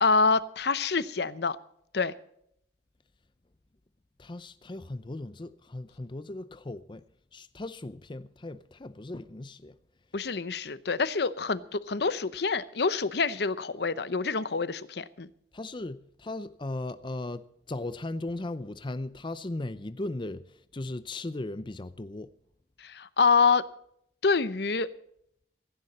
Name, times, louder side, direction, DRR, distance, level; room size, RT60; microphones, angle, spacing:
voice 1, 0.0-1.6 1.9-2.1 10.1-15.3 22.8-23.7 24.2-24.9, left 4 dB, 65° left, 0.8 m, -26 dB
voice 2, 4.2-7.0 7.3-9.7 15.5-22.3, left 2 dB, 25° left, 0.6 m, -37 dB
17.0 x 15.0 x 4.2 m
head